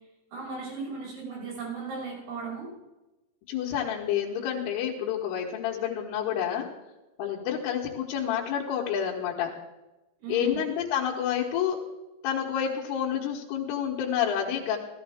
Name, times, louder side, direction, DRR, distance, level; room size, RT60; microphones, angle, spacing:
voice 1, 0.3-2.7 10.2-10.6, right 5 dB, 80° right, -4 dB, 8.7 m, -36 dB
voice 2, 3.5-6.7 7.2-9.5 10.3-11.8 12.2-14.8, left 9 dB, 80° left, -3 dB, 3.7 m, -29 dB
15.0 x 15.0 x 3.5 m, 1.0 s
omnidirectional pair, 5.8 m